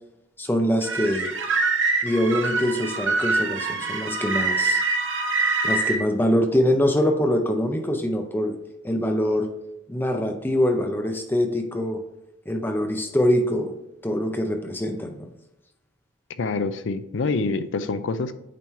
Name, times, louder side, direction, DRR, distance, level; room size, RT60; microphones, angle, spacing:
voice 1, 0.4-1.4 2.0-4.8 5.6-8.6 8.8-9.5 9.9-12.0 12.5-13.7 14.0-15.3, left 1 dB, 10° left, 5 dB, 0.5 m, -24 dB
sound 1, 0.8-6.0, right 3 dB, 75° right, 1.0 m, -24 dB
voice 2, 16.4-18.4, left 3 dB, 75° left, 12 dB, 0.5 m, -26 dB
9.0 x 3.1 x 4.3 m, 0.87 s
head